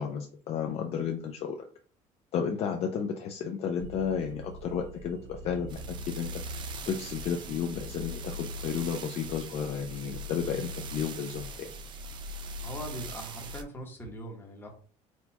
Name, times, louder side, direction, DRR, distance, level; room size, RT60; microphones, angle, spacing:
voice 1, 0.0-1.6 2.3-6.4 6.9-11.7, left 7 dB, 45° left, 4 dB, 0.5 m, -32 dB
sound 1, 3.8-13.6, right 1 dB, 35° right, 0.4 m, -40 dB
voice 2, 12.6-14.7, equal, 15° left, 1 dB, 0.9 m, -41 dB
4.4 x 2.3 x 4.0 m, 0.43 s
cardioid pair, 165°, 14 cm